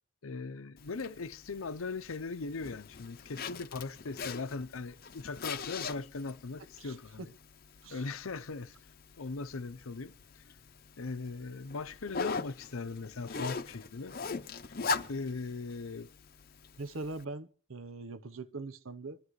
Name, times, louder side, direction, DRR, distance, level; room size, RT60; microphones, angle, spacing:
voice 1, 0.2-7.3 7.9-8.8 9.2-10.4 11.0-14.2 15.1-16.1, left 4 dB, 85° left, 0.7 m, -39 dB
Zipper (clothing), 0.8-17.2, left 4 dB, 45° left, 0.7 m, -42 dB
voice 2, 6.8-7.3 7.8-8.0 16.8-19.2, right 3 dB, 80° right, 0.9 m, -42 dB
23.5 x 13.5 x 3.2 m
head